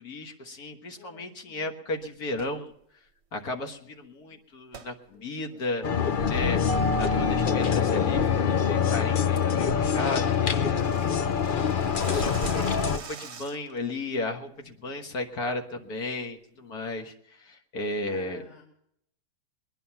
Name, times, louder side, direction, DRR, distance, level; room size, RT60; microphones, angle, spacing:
voice 1, 0.0-2.7 3.3-5.9 6.3-6.6 7.0-18.4, left 2 dB, 60° left, 4 dB, 2.0 m, -35 dB
voice 2, 1.0-1.6 4.3-4.4 5.1-5.2 5.5-5.6 14.8-15.2 18.0-18.6, left 5 dB, 40° left, -3 dB, 2.7 m, -52 dB
sound 1, 2.3-2.6 4.7-4.9 5.4-5.5 6.1-6.3 6.7-7.0 7.4-7.7 8.0-8.1 8.5-8.7 9.1-9.2 9.5-9.6 9.8-9.9 10.2-13.8, right 6 dB, 50° right, 1.0 m, -44 dB
sound 2, 5.8-13.0, left 7 dB, 80° left, 0.4 m, -25 dB
Mallet percussion, 6.7-9.1, right 5 dB, 90° right, 1.4 m, -35 dB
21.0 x 10.5 x 5.7 m, 0.74 s
omnidirectional pair, 1.8 m